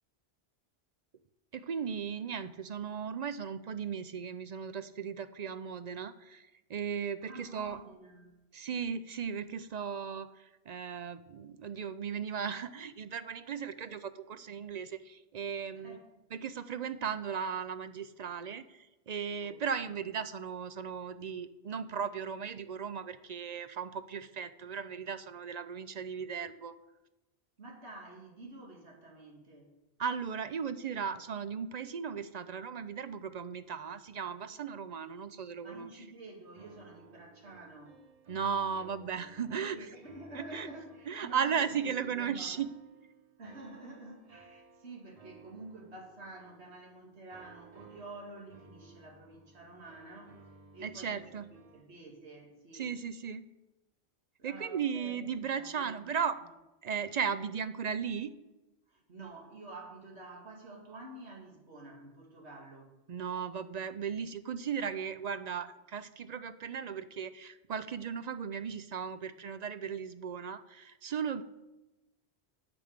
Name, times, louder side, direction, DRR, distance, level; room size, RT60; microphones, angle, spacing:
voice 1, 1.5-7.8 8.5-16.0 16.3-26.7 30.0-35.9 38.3-39.8 40.3-40.7 41.1-42.7 50.8-51.5 52.7-53.5 54.4-56.4 56.8-58.4 63.1-71.4, right 7 dB, 55° right, 13 dB, 0.5 m, -36 dB
voice 2, 7.2-8.4 15.7-16.1 19.4-20.0 27.6-29.7 35.6-38.0 38.6-39.2 39.5-42.7 43.4-50.5 50.7-51.4 51.7-52.9 54.4-56.1 56.4-56.5 58.9-63.0, right 2 dB, 90° right, 1 dB, 2.4 m, -49 dB
sound 1, 36.3-51.8, right 3 dB, 40° right, 0.9 m, -58 dB
9.2 x 8.0 x 6.5 m, 1.0 s
omnidirectional pair, 1.1 m